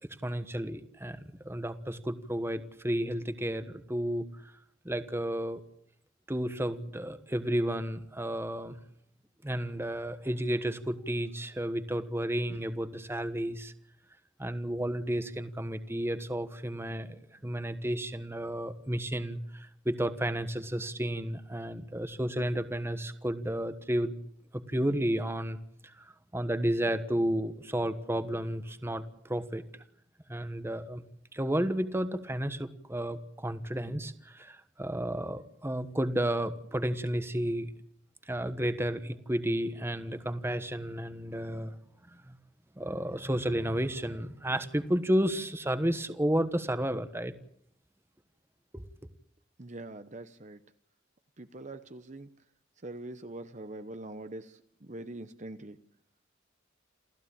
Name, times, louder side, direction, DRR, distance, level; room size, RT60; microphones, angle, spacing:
voice 1, 0.2-4.5 4.8-5.6 6.3-8.8 9.4-13.7 14.4-24.1 24.5-25.6 25.8-29.6 30.3-31.0 31.3-37.7 38.3-41.7 42.3-42.4 42.8-47.3 48.7-48.9, right 1 dB, 15° right, 11 dB, 1.3 m, -32 dB
voice 2, 49.6-50.6 51.4-52.3 52.8-54.5 54.9-55.8, right 2 dB, 40° right, 10 dB, 1.0 m, -43 dB
28.5 x 15.5 x 8.8 m, 0.69 s
head